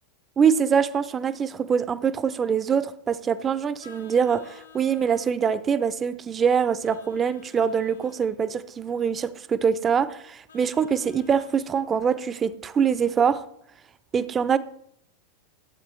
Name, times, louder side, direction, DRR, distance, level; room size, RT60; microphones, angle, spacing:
voice 1, 0.4-13.5 14.1-14.6, right 7 dB, 20° right, 0.5 m, -24 dB
Vehicle horn car horn honking, 3.8-5.4 6.8-8.3 10.5-11.7, left 7 dB, 70° left, 1.9 m, -51 dB
12.0 x 8.2 x 3.2 m
figure-of-eight pair, 90°, 0 cm